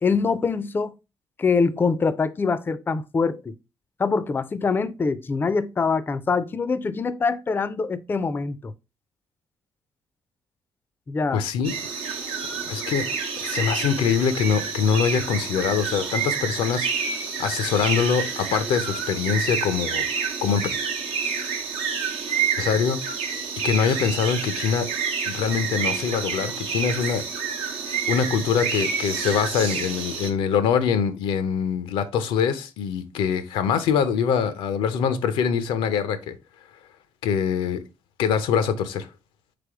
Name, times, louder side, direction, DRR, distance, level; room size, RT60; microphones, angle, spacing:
voice 1, 0.0-0.9 1.4-3.5 4.0-8.7 11.1-11.4, left 4 dB, 25° left, 0.3 m, -24 dB
voice 2, 11.3-11.7 12.1-12.3 12.6-13.1 13.4-16.9 17.4-20.1 20.4-20.7 22.6-23.0 23.6-24.9 25.3-27.2 28.1-36.3 37.2-37.8 38.2-39.1, left 7 dB, 90° left, 0.5 m, -24 dB
sound 1, 11.6-30.3, right 6 dB, 90° right, 0.8 m, -28 dB
3.7 x 3.4 x 3.4 m
cardioid pair, 85°, 9 cm